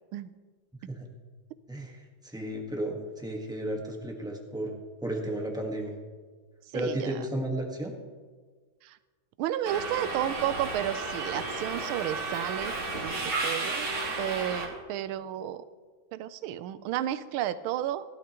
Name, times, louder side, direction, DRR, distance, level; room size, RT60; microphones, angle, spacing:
voice 1, 1.7-4.7 5.0-6.0 6.7-7.9, right 1 dB, 5° right, 1 dB, 1.0 m, -33 dB
voice 2, 6.7-7.2 8.8-9.0 9.4-12.7 13.0-13.9 14.2-15.6 16.1-18.0, right 11 dB, 85° right, 14 dB, 1.4 m, -32 dB
Subway metro underground, 9.7-14.6, right 3 dB, 50° right, 2.4 m, -33 dB
16.5 x 12.0 x 3.0 m, 1.5 s
omnidirectional pair, 2.2 m